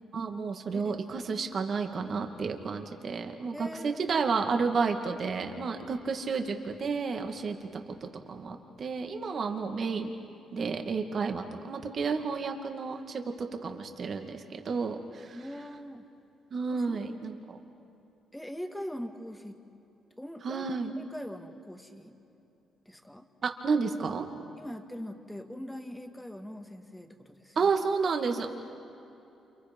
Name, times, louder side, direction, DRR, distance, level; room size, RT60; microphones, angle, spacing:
voice 1, 0.1-10.1 10.5-15.4 16.5-17.6 20.4-20.9 23.4-24.3 27.6-28.5, right 5 dB, 50° right, 5 dB, 2.3 m, -31 dB
voice 2, 3.5-4.0 7.5-7.7 15.3-16.1 16.7-17.0 18.3-19.6 20.2-20.7 21.0-22.2 22.9-23.3 24.6-27.7, equal, 5° left, 5 dB, 2.0 m, -42 dB
29.5 x 29.5 x 5.5 m, 2.9 s
cardioid pair, 90°, 0 cm